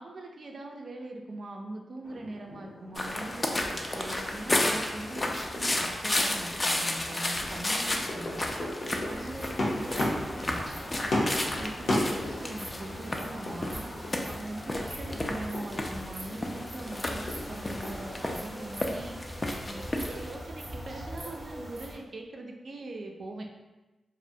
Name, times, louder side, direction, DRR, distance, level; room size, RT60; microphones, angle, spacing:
voice 1, 0.0-8.5 9.1-10.7 11.3-13.9 14.3-19.2 19.7-23.5, right 2 dB, 60° right, 2 dB, 0.4 m, -41 dB
Fireworks Crackle, 2.0-18.2, left 1 dB, 70° left, 0.6 m, -37 dB
sound 1, 2.9-20.3, left 1 dB, 35° left, 0.3 m, -33 dB
sound 2, 9.0-22.0, equal, 30° right, 0.7 m, -43 dB
2.4 x 2.0 x 2.6 m, 1.1 s
cardioid pair, 50°, 0 cm